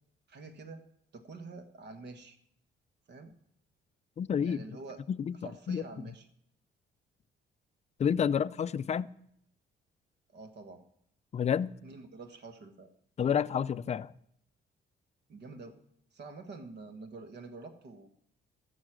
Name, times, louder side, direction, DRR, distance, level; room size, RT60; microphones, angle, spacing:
voice 1, 0.3-0.8 1.1-2.4 3.1-3.3 4.4-5.0 5.4-6.2 10.3-10.8 11.8-12.9 15.3-15.8 16.1-18.1, right 3 dB, 60° right, 1.4 m, -47 dB
voice 2, 4.2-4.6 5.1-5.3 5.7-5.8 8.0-9.1 11.3-11.7 13.2-14.1, left 8 dB, 35° left, 0.4 m, -29 dB
14.0 x 6.5 x 6.2 m
cardioid pair, 90°, 20 cm